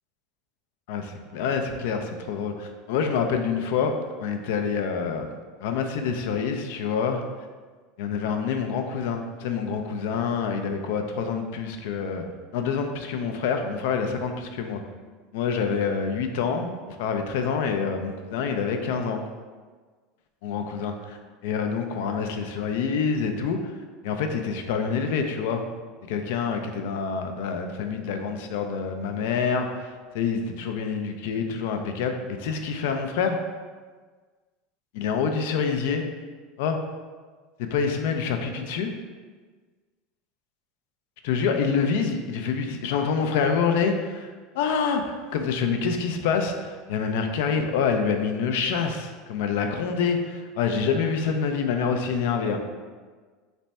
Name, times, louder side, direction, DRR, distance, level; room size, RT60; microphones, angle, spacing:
voice 1, 0.9-3.9 4.2-5.3 5.6-7.2 8.0-12.2 12.5-14.8 15.3-19.2 20.4-23.7 24.0-25.6 26.1-33.4 35.0-36.0 36.6-36.8 37.6-38.9 41.2-52.6, left 6 dB, 75° left, 5 dB, 0.4 m, -27 dB
3.3 x 2.1 x 4.0 m, 1.4 s
supercardioid pair, 140°, 0 cm